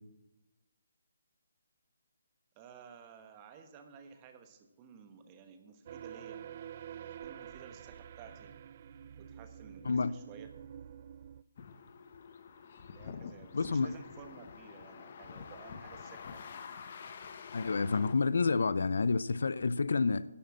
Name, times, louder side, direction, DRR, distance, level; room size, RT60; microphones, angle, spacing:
voice 1, 2.5-6.4 7.2-8.5 9.2-10.5 12.9-16.5, right 6 dB, 25° right, 1.1 m, -54 dB
sound 1, 5.9-11.4, right 9 dB, 40° right, 0.3 m, -48 dB
sound 2, 11.6-18.2, left 6 dB, 45° left, 0.9 m, -47 dB
voice 2, 13.5-13.9 17.5-20.2, left 4 dB, 70° left, 0.4 m, -29 dB
11.0 x 6.5 x 7.5 m
hypercardioid pair, 160°, 0 cm